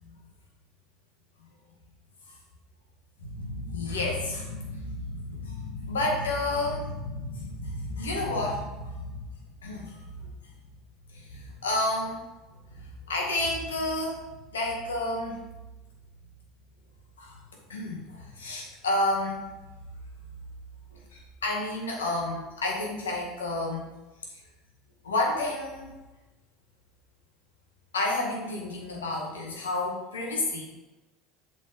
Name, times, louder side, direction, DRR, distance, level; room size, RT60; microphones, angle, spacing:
voice 1, 3.2-9.2 9.6-10.5 11.1-12.2 12.7-14.2 14.5-15.4 17.2-17.4 17.7-19.4 20.9-23.9 24.3-24.4 25.0-25.9 27.9-30.6, left 2 dB, 80° left, -1 dB, 2.1 m, -31 dB
7.6 x 5.4 x 5.4 m, 1.1 s
hypercardioid pair, 75°, 0 cm